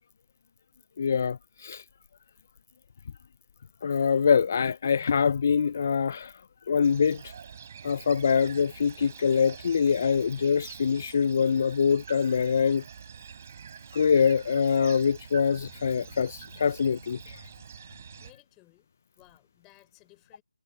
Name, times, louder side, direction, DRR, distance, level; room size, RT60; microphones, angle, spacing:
voice 1, 1.0-1.8 3.8-6.3 6.7-7.2 7.8-12.8 13.9-17.2, left 6 dB, 35° left, 0.3 m, -24 dB
sound 1, 6.8-18.3, right 7 dB, 35° right, 3.6 m, -46 dB
voice 2, 18.2-18.9 19.2-20.4, left 21 dB, 10° left, 4.4 m, -58 dB
figure-of-eight pair, 160°, 2 cm